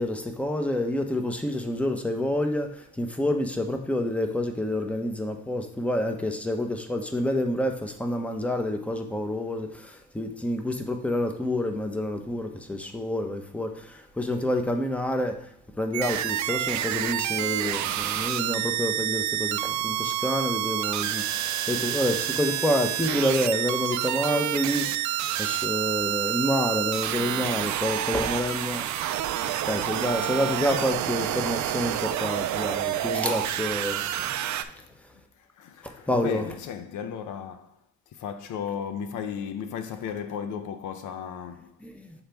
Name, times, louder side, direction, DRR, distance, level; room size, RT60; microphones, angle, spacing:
voice 1, 0.0-15.5 15.8-28.8 29.7-34.4 35.8-36.5 41.8-42.1, left 1 dB, 5° left, 0.8 m, -28 dB
sound 1, 15.9-34.6, right 12 dB, 70° right, 0.5 m, -28 dB
voice 2, 29.4-29.7 34.6-34.9 35.4-37.7 38.1-41.8, left 7 dB, 80° left, 0.6 m, -35 dB
7.2 x 4.0 x 3.4 m
cardioid pair, 90°, 30 cm